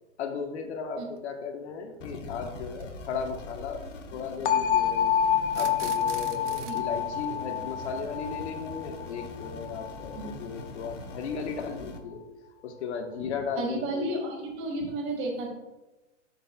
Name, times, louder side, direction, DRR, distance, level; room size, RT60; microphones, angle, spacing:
voice 1, 0.2-3.8 4.1-5.1 5.5-12.2 12.6-14.1 14.8-14.9, left 5 dB, 65° left, 4 dB, 1.2 m, -36 dB
sound 1, 1.2-1.3 2.7-2.8 5.5-6.8, right 11 dB, 70° right, 0.7 m, -43 dB
sound 2, 2.0-12.0, left 3 dB, 80° left, 1.1 m, -43 dB
sound 3, 4.5-10.3, left 9 dB, 45° left, 0.6 m, -28 dB
voice 2, 13.6-15.5, right 2 dB, 35° right, 0 dB, 2.0 m, -32 dB
10.5 x 4.4 x 2.3 m, 1.1 s
hypercardioid pair, 135°, 37 cm